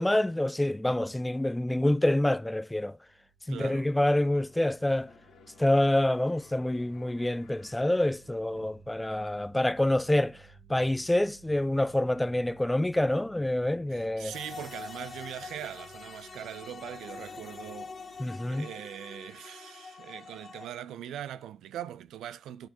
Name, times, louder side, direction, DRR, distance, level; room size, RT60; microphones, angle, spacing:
voice 1, 0.0-3.0 3.5-5.1 5.6-10.4 10.7-14.3 18.2-18.7, left 1 dB, 10° left, 0.3 m, -27 dB
sound 1, 3.0-18.6, right 5 dB, 35° right, 1.0 m, -58 dB
sound 2, 3.5-9.0 9.4-9.5, left 5 dB, 75° left, 1.6 m, -59 dB
voice 2, 3.5-3.9 8.5-8.7 13.9-22.7, right 10 dB, 80° right, 0.3 m, -41 dB
sound 3, 14.3-20.7, left 4 dB, 50° left, 1.3 m, -45 dB
11.0 x 6.5 x 2.8 m
supercardioid pair, 50°, 0 cm